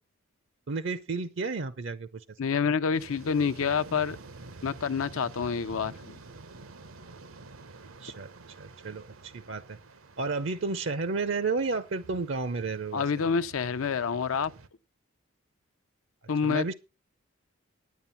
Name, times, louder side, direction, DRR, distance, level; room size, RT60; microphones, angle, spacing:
voice 1, 0.7-2.2 8.0-8.3 8.6-9.8 10.2-13.0 16.4-16.7, right 4 dB, 60° right, 0.6 m, -32 dB
voice 2, 2.4-4.2 4.6-6.1 12.9-14.5 16.3-16.7, left 6 dB, 80° left, 0.6 m, -28 dB
sound 1, 2.9-14.7, right 3 dB, 80° right, 1.0 m, -49 dB
9.7 x 9.3 x 5.7 m
head